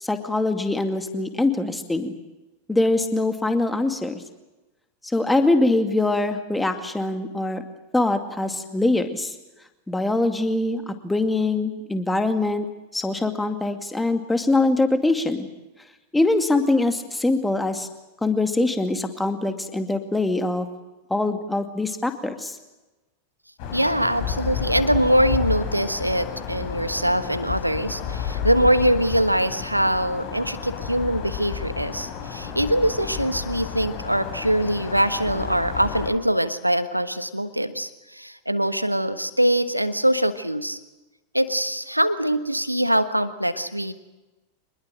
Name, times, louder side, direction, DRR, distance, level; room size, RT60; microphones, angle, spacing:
voice 1, 0.0-2.1 2.7-4.2 5.1-7.6 7.9-9.3 9.9-12.7 12.9-15.5 16.1-17.9 18.2-20.7 21.1-22.6, left 2 dB, 5° left, 7 dB, 2.3 m, -23 dB
sound 1, 23.6-36.1, left 8 dB, 45° left, 4.4 m, -31 dB
voice 2, 23.7-40.8 41.3-43.9, right 1 dB, 90° right, 12 dB, 1.3 m, -23 dB
25.0 x 21.0 x 7.8 m, 1.1 s
figure-of-eight pair, 90°, 0 cm